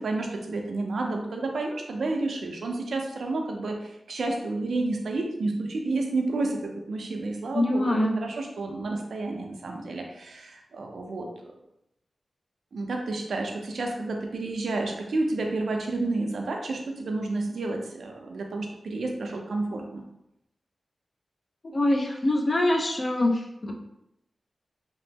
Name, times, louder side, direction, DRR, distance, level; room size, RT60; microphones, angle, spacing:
voice 1, 0.0-11.3 12.7-20.0, right 2 dB, 80° right, 2 dB, 0.5 m, -30 dB
voice 2, 7.5-8.2 21.7-23.7, left 1 dB, 40° left, 2 dB, 0.5 m, -24 dB
3.0 x 2.0 x 3.3 m, 0.84 s
wide cardioid pair, 75°, 0 cm